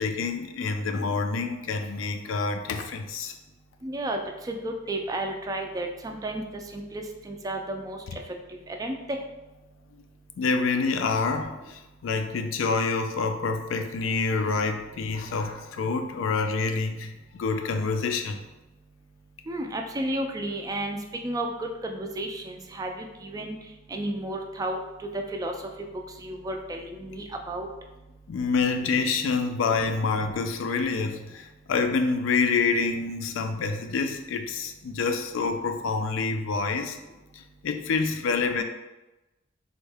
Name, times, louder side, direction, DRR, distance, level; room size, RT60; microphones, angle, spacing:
voice 1, 0.0-3.3 10.4-18.4 28.3-37.0 37.3-38.6, left 4 dB, 75° left, 6 dB, 0.4 m, -27 dB
voice 2, 3.8-4.2 4.5-6.4 6.7-8.2 8.8-8.9 19.5-21.0 21.2-23.6 23.9-24.8 25.1-25.5 26.2-27.7, right 1 dB, 20° right, 3 dB, 0.3 m, -32 dB
3.5 x 2.1 x 3.3 m, 1.0 s
head